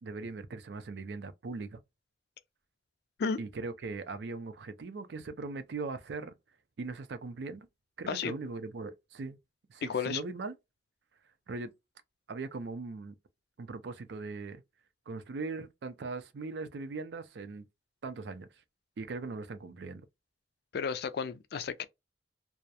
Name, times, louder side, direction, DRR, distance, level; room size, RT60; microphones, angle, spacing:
voice 1, 0.0-1.8 3.4-6.3 6.8-7.7 8.0-9.4 9.7-10.5 11.5-11.7 12.3-13.1 13.6-14.6 15.1-17.7 18.0-18.5 19.0-20.1, right 3 dB, 70° right, 0.4 m, -39 dB
voice 2, 9.8-10.2 20.7-21.8, left 6 dB, 65° left, 0.3 m, -33 dB
2.3 x 2.0 x 2.7 m
head